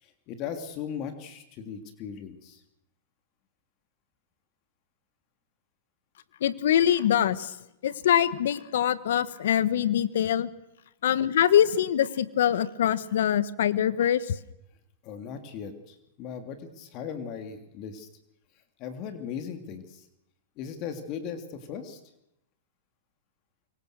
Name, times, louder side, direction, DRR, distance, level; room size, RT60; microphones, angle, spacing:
voice 1, 0.0-2.6 15.0-18.1 18.8-20.1 20.6-22.0, left 7 dB, 45° left, 7 dB, 3.2 m, -38 dB
voice 2, 6.4-7.5 7.8-10.5 11.0-14.3, left 10 dB, 70° left, 16 dB, 1.4 m, -24 dB
25.5 x 24.0 x 6.6 m, 0.82 s
hypercardioid pair, 120°, 0 cm